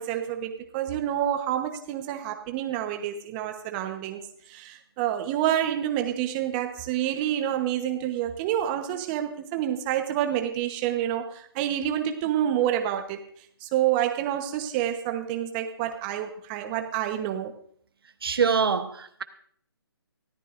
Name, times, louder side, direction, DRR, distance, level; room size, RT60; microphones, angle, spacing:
voice 1, 0.0-4.2 4.5-13.2 13.6-17.5, right 11 dB, 20° right, 1.0 m, -28 dB
voice 2, 18.2-19.2, right 6 dB, 65° right, 1.1 m, -24 dB
24.0 x 13.5 x 2.6 m
hypercardioid pair, 150°, 13 cm